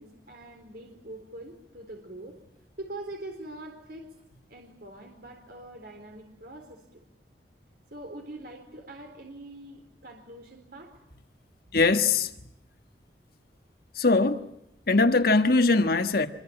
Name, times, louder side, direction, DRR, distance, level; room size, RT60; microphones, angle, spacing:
voice 1, 0.0-2.4 2.8-4.1 4.5-7.0 7.9-10.9, right 1 dB, 55° right, 4.1 m, -43 dB
voice 2, 11.7-12.3 13.9-14.5 14.9-16.3, left 3 dB, 55° left, 1.4 m, -21 dB
26.0 x 23.5 x 8.8 m
head